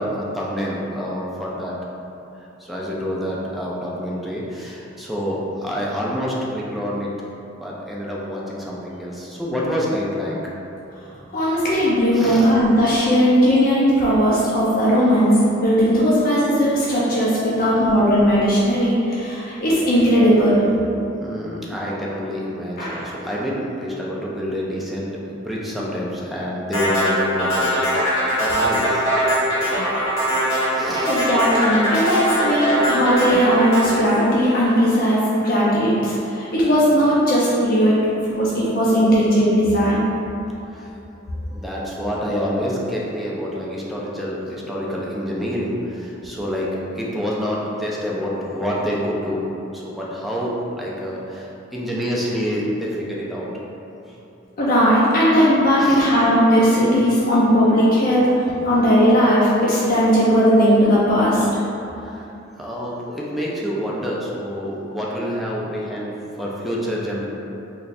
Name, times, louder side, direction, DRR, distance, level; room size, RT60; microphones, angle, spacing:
voice 1, 0.0-1.7 2.6-7.1 7.6-10.3 12.1-12.5 21.2-27.7 28.4-29.0 30.7-31.1 40.6-40.9 41.4-49.4 49.7-53.5 54.1-54.2 55.8-56.1 62.0-67.3, equal, ahead, -5 dB, 0.4 m, -27 dB
voice 2, 11.3-20.6 22.8-23.0 31.1-38.0 38.3-40.0 54.6-61.5, equal, 45° left, -8 dB, 0.6 m, -17 dB
sound 1, 26.7-35.1, equal, 70° left, 1.3 m, -21 dB
3.2 x 2.4 x 4.1 m, 2.9 s
head